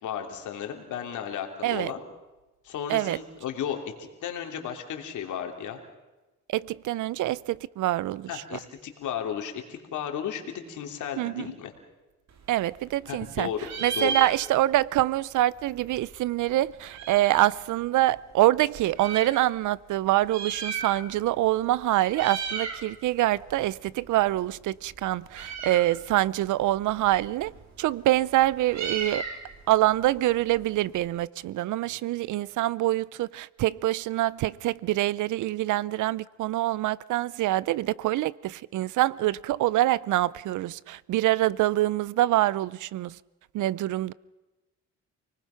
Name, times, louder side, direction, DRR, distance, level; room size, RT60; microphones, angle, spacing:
voice 1, 0.0-2.0 2.6-5.8 8.3-11.7 13.1-14.1 29.1-29.2 31.8-32.0, left 8 dB, 75° left, 3.2 m, -34 dB
voice 2, 6.5-8.6 11.2-11.5 12.5-13.5 13.8-27.5 27.8-29.2 29.7-43.2 43.5-44.1, right 15 dB, 80° right, 0.6 m, -25 dB
Meow, 12.3-13.3 13.6-14.9 15.1-15.2 15.4-17.5 18.2-19.4 20.1-21.3 21.6-21.8 22.1-22.9 23.2-31.1, right 5 dB, 60° right, 2.8 m, -36 dB
29.0 x 19.5 x 5.8 m
cardioid pair, 90°, 30 cm